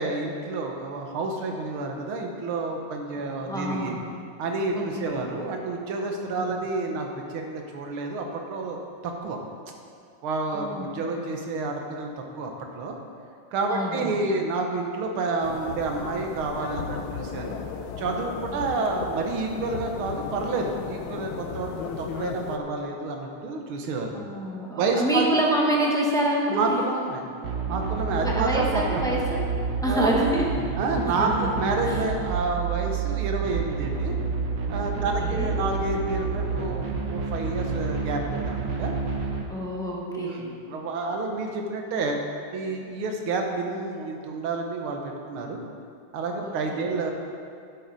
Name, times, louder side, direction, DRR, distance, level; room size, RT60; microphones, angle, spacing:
voice 1, 0.0-4.0 4.4-9.4 10.2-13.0 13.5-17.6 18.0-24.2 24.8-25.3 26.5-27.3 27.7-29.0 29.9-30.1 30.8-34.2 34.7-38.9 40.1-42.2 42.5-45.6 46.1-47.1, right 3 dB, 85° right, 2 dB, 1.9 m, -29 dB
voice 2, 3.2-4.1 4.7-5.3 6.3-6.6 10.5-11.0 13.7-14.3 18.5-18.6 24.1-26.9 28.1-29.5 29.8-31.5 31.8-32.1 34.9-35.6 39.5-40.5 46.4-46.9, right 1 dB, 5° left, -3 dB, 0.7 m, -28 dB
sound 1, 15.4-22.6, left 6 dB, 85° left, 1.6 m, -35 dB
sound 2, 27.4-39.4, right 5 dB, 60° right, 1.5 m, -29 dB
11.0 x 8.5 x 4.1 m, 2.4 s
omnidirectional pair, 2.3 m